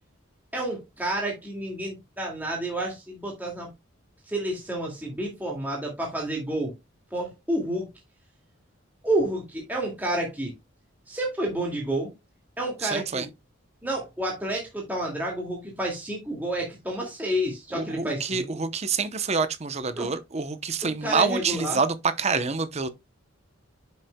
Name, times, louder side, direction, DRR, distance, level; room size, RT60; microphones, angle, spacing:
voice 1, 0.5-3.7 4.3-6.7 7.1-7.9 9.0-10.5 11.1-12.1 12.6-13.3 13.8-18.5 20.0-20.1 20.8-21.8, right 1 dB, 10° right, 2.1 m, -30 dB
voice 2, 12.8-13.3 17.7-22.9, right 5 dB, 30° right, 0.7 m, -27 dB
10.5 x 6.3 x 2.2 m
head